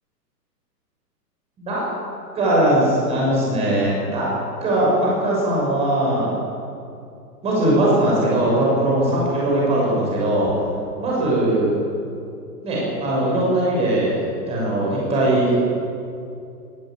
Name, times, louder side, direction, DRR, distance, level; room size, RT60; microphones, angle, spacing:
voice 1, 2.3-4.3 4.6-6.4 7.4-10.5 11.0-11.7 12.6-14.2 14.5-15.5, right 1 dB, 10° right, -4 dB, 6.5 m, -20 dB
19.5 x 16.0 x 9.0 m, 2.5 s
hypercardioid pair, 170°, 49 cm